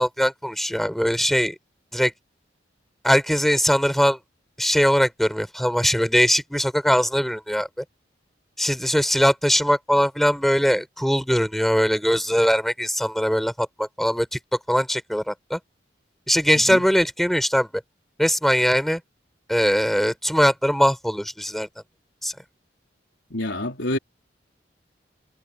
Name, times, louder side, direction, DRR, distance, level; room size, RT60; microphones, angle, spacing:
voice 1, 0.0-1.6 1.9-2.1 3.0-4.2 4.6-7.8 8.6-15.6 16.3-17.7 18.2-19.0 19.5-21.7 22.2-22.3, equal, ahead, 4.0 m, -21 dB
voice 2, 23.3-24.0, left 1 dB, 85° left, 3.7 m, -27 dB
head